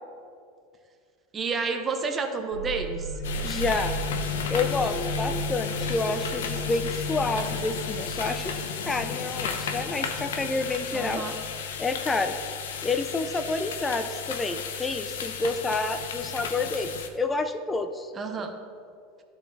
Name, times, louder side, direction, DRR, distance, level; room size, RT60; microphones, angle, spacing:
voice 1, 1.3-3.1 10.9-11.3 18.1-18.5, right 4 dB, 30° right, 5 dB, 0.8 m, -30 dB
sound 1, 2.5-13.9, left 2 dB, 70° left, 1.2 m, -35 dB
sound 2, 3.2-17.1, left 6 dB, 85° left, 0.6 m, -34 dB
voice 2, 3.4-3.9 4.5-8.5 8.8-11.2 11.8-12.4 12.8-18.5, left 3 dB, 15° left, 7 dB, 0.4 m, -29 dB
12.0 x 4.0 x 4.0 m, 2.3 s
supercardioid pair, 105°, 0 cm